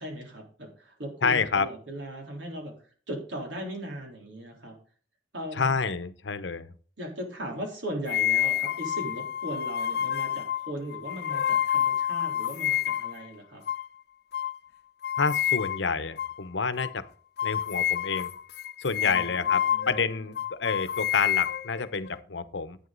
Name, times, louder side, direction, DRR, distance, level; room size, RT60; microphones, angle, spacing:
voice 1, 0.0-2.7 3.1-4.7 5.3-5.7 7.0-13.6 19.0-20.3, right 1 dB, 85° right, 1 dB, 3.8 m, -38 dB
voice 2, 1.2-1.7 5.5-6.7 15.2-17.0 17.4-18.3 18.8-22.8, left 5 dB, 75° left, 13 dB, 0.9 m, -29 dB
sound 1, 8.1-13.2 13.7-13.9 14.3-14.5 15.0-15.9 16.2-16.4 16.8-16.9 17.4-20.0 20.4-22.2, left 10 dB, 60° left, 0.5 m, -28 dB
11.0 x 8.6 x 4.0 m, 0.43 s
head